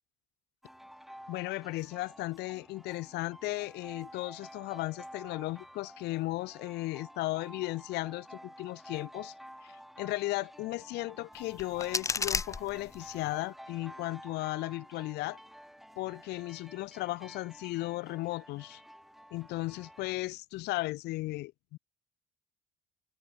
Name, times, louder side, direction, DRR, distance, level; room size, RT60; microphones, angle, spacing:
sound 1, 0.6-20.1, equal, ahead, 1.7 m, -51 dB
voice 1, 1.3-9.3 9.6-9.7 10.0-15.4 16.0-18.8 19.3-21.8, left 19 dB, 85° left, 1.2 m, -36 dB
sound 2, 11.3-13.3, left 4 dB, 20° left, 0.5 m, -35 dB
open air
cardioid pair, 110°, 17 cm